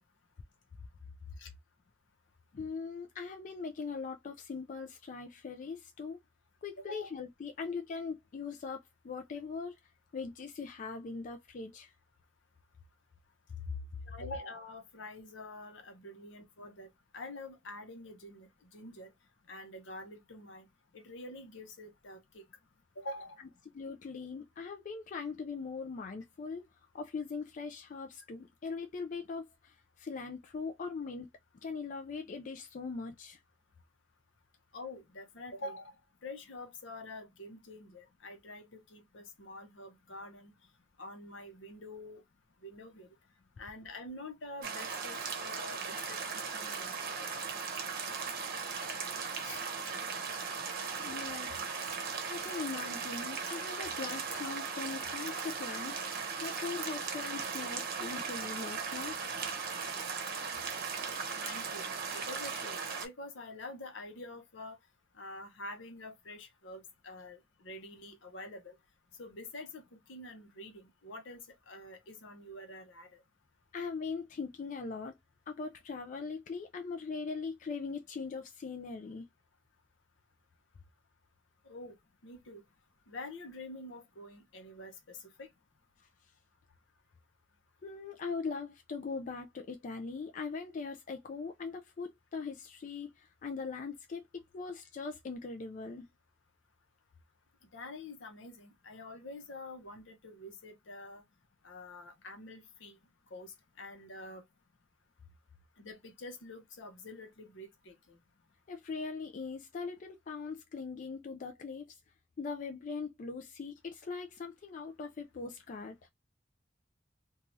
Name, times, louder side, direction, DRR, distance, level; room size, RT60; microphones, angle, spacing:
voice 1, 2.5-6.2 6.6-9.8 10.1-11.9 23.7-31.3 31.6-33.4 51.0-51.7 52.0-59.4 73.7-75.2 75.5-79.3 86.0-86.3 87.8-96.1 108.7-112.0 112.4-116.0, left 4 dB, 40° left, 0.4 m, -41 dB
voice 2, 6.8-7.1 14.1-16.9 17.1-19.1 19.5-20.7 20.9-22.4 23.0-23.5 34.7-35.9 36.2-40.5 41.0-42.2 42.6-43.1 43.6-47.3 49.4-49.6 61.3-61.9 62.1-64.8 65.1-68.8 69.2-73.2 81.6-82.0 82.2-82.6 83.1-85.5 97.7-101.2 101.6-103.0 103.3-104.4 105.8-108.2, left 2 dB, 75° left, 0.8 m, -47 dB
sound 1, 44.6-63.1, right 5 dB, 50° right, 0.8 m, -38 dB
2.7 x 2.3 x 3.0 m
head